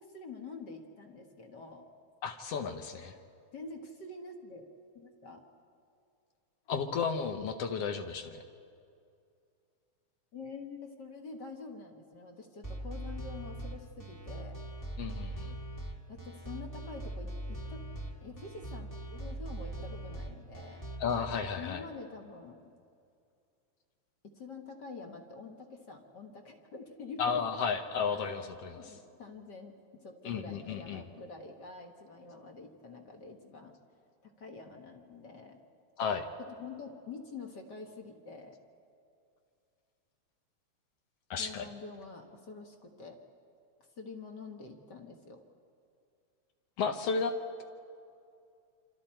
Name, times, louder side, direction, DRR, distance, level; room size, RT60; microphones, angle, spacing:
voice 1, 0.0-1.9 3.5-4.6 4.9-5.4 10.3-14.6 16.1-17.8 18.2-20.9 21.6-22.7 24.2-27.4 28.1-28.5 28.8-29.8 30.0-33.8 34.2-35.6 36.6-38.5 41.4-43.2 43.9-45.4, left 4 dB, 45° left, 3 dB, 1.5 m, -46 dB
voice 2, 2.2-3.2 6.7-8.4 15.0-15.5 21.0-21.8 27.2-28.8 30.2-31.0 36.0-36.3 41.3-41.7 46.8-47.6, left 6 dB, 65° left, 6 dB, 1.7 m, -33 dB
sound 1, 12.6-21.4, right 1 dB, 10° left, 1.0 m, -41 dB
27.0 x 27.0 x 4.4 m, 2.5 s
omnidirectional pair, 3.5 m